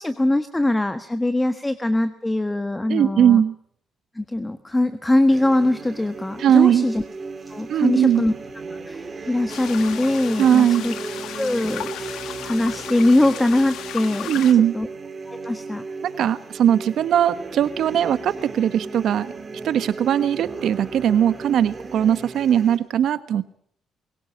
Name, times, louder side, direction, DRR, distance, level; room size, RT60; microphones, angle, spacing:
voice 1, 0.0-3.4 4.1-7.0 7.5-8.3 8.9-10.9 11.3-14.3 14.7-14.9 15.3-15.8, left 1 dB, 10° left, 10 dB, 1.3 m, -22 dB
voice 2, 2.9-3.5 6.4-6.9 7.7-8.2 10.4-10.8 14.3-14.7 16.0-19.3 19.6-23.4, right 9 dB, 70° right, 13 dB, 1.3 m, -19 dB
sound 1, 5.3-22.8, right 4 dB, 30° right, 3.9 m, -35 dB
sound 2, 9.5-14.5, left 10 dB, 80° left, 1.4 m, -35 dB
22.5 x 17.0 x 8.7 m, 0.65 s
cardioid pair, 90°, 0 cm